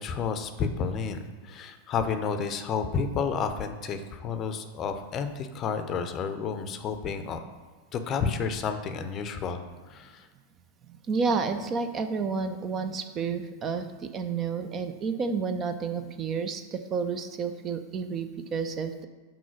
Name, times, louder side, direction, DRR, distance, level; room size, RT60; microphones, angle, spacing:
voice 1, 0.0-7.4 7.9-10.3, left 6 dB, 30° left, 8 dB, 0.6 m, -31 dB
voice 2, 11.1-19.1, right 5 dB, 30° right, 8 dB, 0.5 m, -30 dB
6.1 x 4.4 x 5.9 m, 1.5 s
figure-of-eight pair, 90°, 0 cm